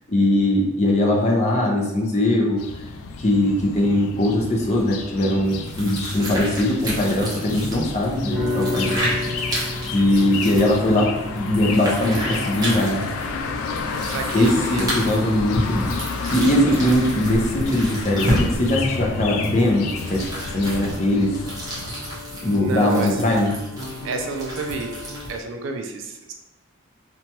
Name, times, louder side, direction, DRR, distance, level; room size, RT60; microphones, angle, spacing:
voice 1, 0.1-2.6 3.2-9.1 9.9-13.0 14.3-20.2 20.5-21.3 22.4-23.5, left 1 dB, 30° left, -1 dB, 0.5 m, -20 dB
sound 1, 2.6-21.9, left 4 dB, 90° left, 0.3 m, -31 dB
sound 2, 5.4-25.4, equal, 15° right, 0.6 m, -31 dB
sound 3, 8.3-18.6 18.9-25.3, left 2 dB, ahead, 1.4 m, -35 dB
voice 2, 9.9-10.3 14.1-14.9 15.2-15.4 22.6-23.2 24.0-25.0 25.3-26.3, right 4 dB, 65° right, 4 dB, 0.3 m, -30 dB
2.9 x 2.2 x 2.8 m, 0.92 s
head